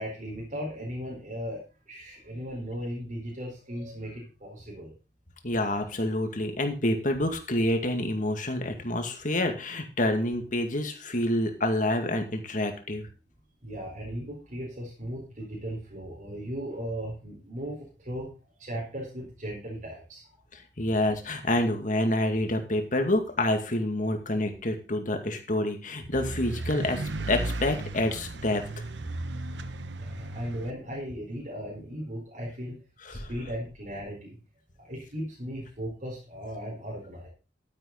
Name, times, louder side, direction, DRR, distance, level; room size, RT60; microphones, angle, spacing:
voice 1, 0.0-4.9 13.6-18.3 18.6-20.3 30.0-32.8 33.1-34.4 34.8-37.3, equal, 45° right, -3 dB, 4.4 m, -37 dB
voice 2, 5.4-13.1 20.8-28.6 33.1-33.3, left 1 dB, 45° left, 5 dB, 2.2 m, -27 dB
sound 1, 26.1-30.7, right 2 dB, 85° right, 1.0 m, -35 dB
12.0 x 10.0 x 4.0 m, 0.33 s
head